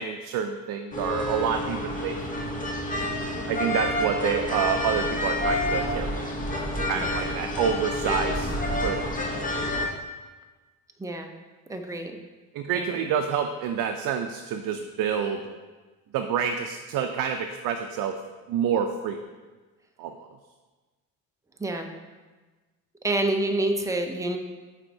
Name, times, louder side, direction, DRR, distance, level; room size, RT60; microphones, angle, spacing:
voice 1, 0.0-2.5 3.5-6.3 6.9-8.5 8.8-9.1 12.5-15.4 16.1-18.2 18.5-19.2 20.0-20.3, right 7 dB, 70° right, 5 dB, 0.5 m, -28 dB
sound 1, 0.9-9.9, left 1 dB, 25° left, 0.8 m, -28 dB
voice 2, 7.0-7.3 11.0-11.3 11.7-12.1 12.7-13.1 21.6-21.9 23.0-24.4, right 2 dB, 10° right, 4 dB, 0.5 m, -28 dB
8.8 x 4.1 x 2.6 m, 1.3 s
cardioid pair, 130°, 34 cm